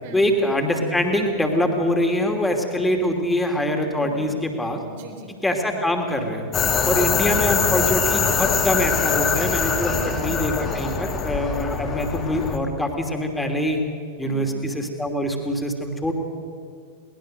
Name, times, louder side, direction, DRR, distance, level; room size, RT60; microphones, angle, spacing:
voice 1, 0.1-4.8 5.4-6.5 6.8-13.8 14.2-16.1, left 1 dB, 5° left, 3 dB, 2.8 m, -24 dB
voice 2, 4.0-4.3 4.9-5.4 6.8-7.0 9.8-10.2 14.2-14.6, right 1 dB, 55° right, 3 dB, 3.8 m, -40 dB
sound 1, 6.5-12.6, left 6 dB, 25° left, 2.1 m, -23 dB
22.0 x 19.5 x 6.6 m, 2.3 s
figure-of-eight pair, 90°, 0 cm